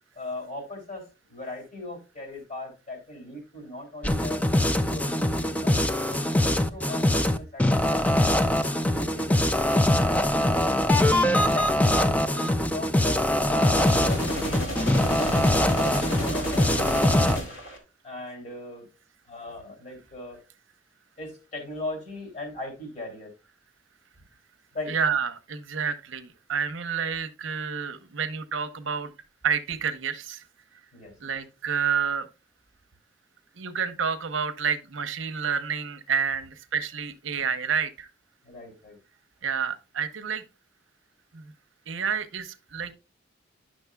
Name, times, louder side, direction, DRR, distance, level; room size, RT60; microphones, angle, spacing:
voice 1, 0.1-4.4 4.9-8.4 8.9-10.9 11.5-14.7 15.2-15.4 15.7-17.5 18.0-18.9 19.3-20.4 21.2-23.3 24.7-25.0 30.9-31.2 38.4-39.0, left 2 dB, 35° left, 2.8 m, -39 dB
sound 1, 4.0-17.4, left 1 dB, 5° left, 0.3 m, -23 dB
sound 2, 13.8-17.8, equal, 75° left, 2.2 m, -32 dB
voice 2, 24.9-29.1 29.4-30.4 31.2-32.3 33.6-38.1 39.4-40.4 41.3-41.5 41.9-42.9, right 6 dB, 70° right, 0.8 m, -29 dB
10.5 x 6.2 x 2.3 m
head